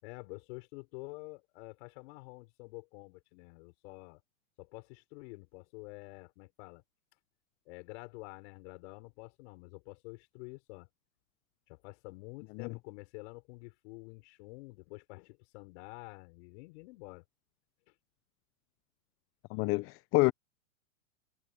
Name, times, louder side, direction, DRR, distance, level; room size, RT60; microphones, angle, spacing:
voice 1, 0.0-4.2 4.6-6.8 7.7-10.9 11.7-17.2 17.9-18.0, left 27 dB, 50° left, 6.0 m, -48 dB
voice 2, 19.5-20.3, left 24 dB, 30° left, 0.7 m, -28 dB
hypercardioid pair, 120°, 43 cm